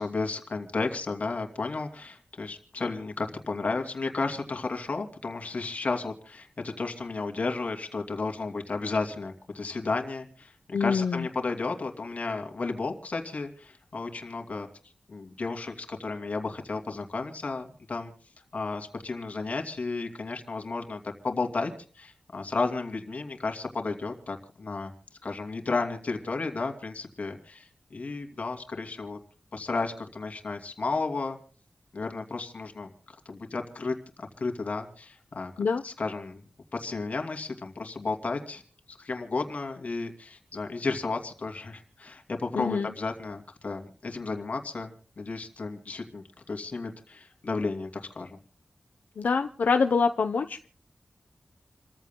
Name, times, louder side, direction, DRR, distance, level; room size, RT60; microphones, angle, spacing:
voice 1, 0.0-14.7 15.1-18.1 18.5-24.9 25.2-29.2 29.5-31.4 31.9-32.9 33.3-35.5 35.8-36.4 36.7-38.6 38.9-44.9 45.2-48.4, left 3 dB, 60° left, 4 dB, 2.6 m, -33 dB
voice 2, 10.7-11.3 35.6-35.8 42.5-42.9 49.2-50.7, left 5 dB, 85° left, 7 dB, 0.7 m, -25 dB
29.0 x 15.0 x 2.2 m, 0.39 s
wide cardioid pair, 85°, 3 cm